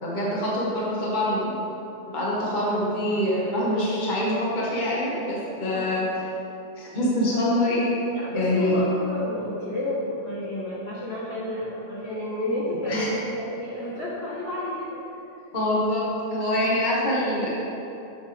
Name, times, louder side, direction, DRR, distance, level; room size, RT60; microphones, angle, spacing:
voice 1, 0.0-1.6 2.1-6.0 6.8-7.9 8.3-8.8 12.9-13.1 15.5-17.5, left 1 dB, 75° left, -6 dB, 0.4 m, -25 dB
voice 2, 8.0-15.0 16.5-16.8, left 1 dB, 50° left, -8 dB, 0.7 m, -31 dB
12.0 x 7.7 x 3.5 m, 3.0 s
omnidirectional pair, 4.0 m